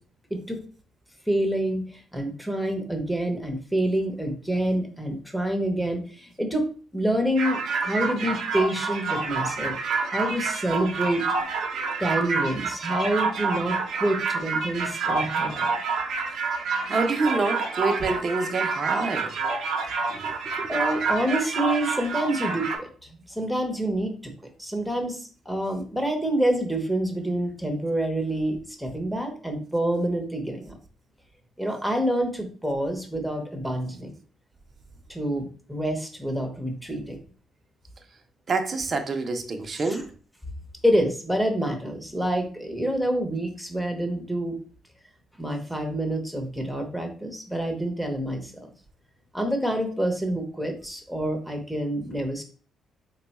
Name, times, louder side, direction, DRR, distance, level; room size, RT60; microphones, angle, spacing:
voice 1, 1.3-6.7 6.9-11.2 12.0-15.7 20.7-24.3 24.6-30.7 31.6-34.1 35.1-37.2 39.7-40.0 40.8-44.6 45.4-48.7 49.3-52.4, right 1 dB, ahead, 0.9 m, -27 dB
sound 1, 7.4-22.8, right 4 dB, 75° right, 0.8 m, -28 dB
voice 2, 16.8-19.3 20.1-20.2 20.6-20.7 38.5-40.1, right 3 dB, 40° right, 0.7 m, -27 dB
3.6 x 2.3 x 4.1 m
cardioid pair, 90°, 0 cm